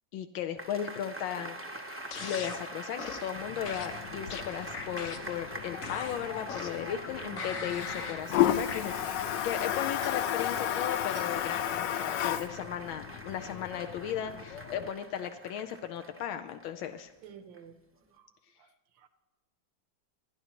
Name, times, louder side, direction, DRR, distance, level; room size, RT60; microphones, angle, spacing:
voice 1, 0.1-8.9 9.4-17.1, left 9 dB, 90° left, 7 dB, 1.4 m, -36 dB
sound 1, 0.6-17.1 17.5-17.6, right 1 dB, 20° right, 0.3 m, -44 dB
sound 2, 2.1-2.6 3.0-3.3 3.7-5.4 5.8-6.9 7.4-8.2 8.7-8.8, left 6 dB, 55° left, 1.0 m, -40 dB
Toilet flush, 3.4-14.9, left 11 dB, 75° left, 1.2 m, -34 dB
voice 2, 7.2-7.8 10.0-10.1 11.1-11.3 17.2-17.8 18.1-19.1, right 7 dB, 75° right, 9 dB, 1.5 m, -51 dB
28.0 x 10.5 x 3.0 m, 1.1 s
omnidirectional pair, 2.1 m